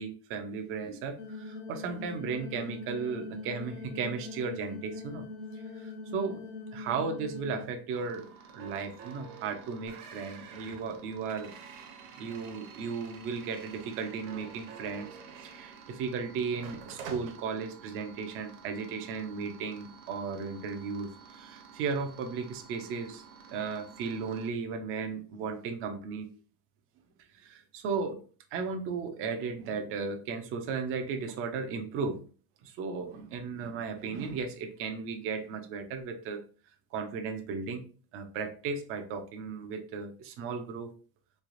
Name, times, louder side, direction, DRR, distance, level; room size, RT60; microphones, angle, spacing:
voice 1, 0.0-5.3 5.8-6.5 6.7-8.3 8.5-11.5 12.2-15.1 15.4-23.2 23.5-26.3 27.3-28.2 28.5-32.2 32.6-36.4 36.9-37.8 38.1-40.9, right 5 dB, 30° right, 7 dB, 0.3 m, -35 dB
sound 1, 1.2-7.6, left 3 dB, 50° left, 0.6 m, -42 dB
sound 2, 7.9-24.5, right 5 dB, 85° right, 1.0 m, -52 dB
sound 3, 9.9-16.1 16.5-17.4, right 6 dB, 60° right, 0.8 m, -49 dB
3.3 x 3.2 x 2.4 m, 0.39 s
supercardioid pair, 140°, 49 cm